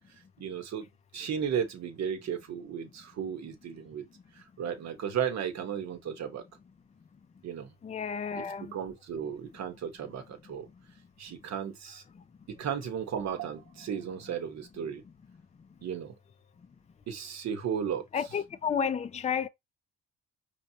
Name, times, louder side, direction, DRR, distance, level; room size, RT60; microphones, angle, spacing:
voice 1, 0.4-0.9 1.1-4.1 4.3-6.4 7.4-7.7 8.3-10.7 11.2-12.0 12.5-15.0 15.8-16.1 17.1-18.3, right 8 dB, 60° right, 1.2 m, -35 dB
voice 2, 7.8-8.7 18.1-19.5, left 7 dB, 25° left, 0.4 m, -31 dB
5.1 x 3.0 x 2.8 m
cardioid pair, 90°, 30 cm